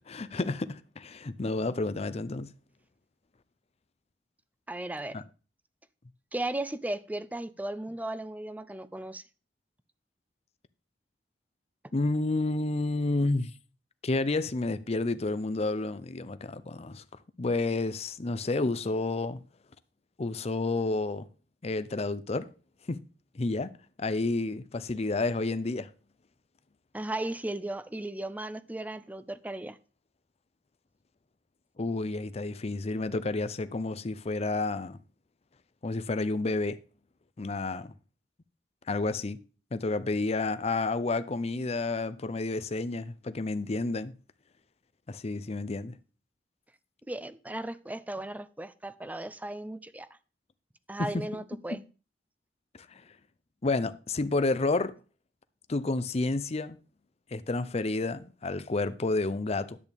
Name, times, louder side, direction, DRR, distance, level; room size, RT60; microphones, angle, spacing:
voice 1, 0.1-2.5 5.1-5.2 11.9-13.5 14.0-17.0 17.4-19.4 20.2-21.3 21.6-22.5 22.9-23.0 23.3-23.7 24.0-25.9 31.8-35.0 35.8-36.8 37.4-37.9 38.9-39.4 39.7-44.1 45.1-46.0 51.0-51.2 51.7-51.8 52.9-53.0 53.6-54.9 55.7-56.8 57.3-59.8, left 3 dB, 35° left, 0.6 m, -30 dB
voice 2, 4.7-5.2 6.3-9.2 26.9-29.8 47.1-50.1 50.9-51.8, right 1 dB, 10° right, 0.5 m, -36 dB
10.5 x 8.5 x 3.5 m
head